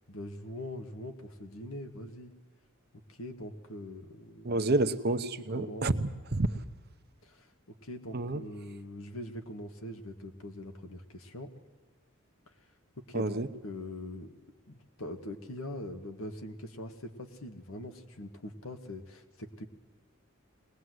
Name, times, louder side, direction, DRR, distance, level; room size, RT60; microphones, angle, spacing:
voice 1, 0.1-2.3 3.1-4.6 5.5-5.9 7.2-7.5 7.8-11.5 13.0-14.3 14.7-19.7, left 1 dB, 75° left, 6 dB, 1.8 m, -42 dB
voice 2, 4.4-6.5 8.1-8.4 13.1-13.5, right 2 dB, 50° right, 10 dB, 0.9 m, -29 dB
22.0 x 19.5 x 7.9 m, 1.4 s
head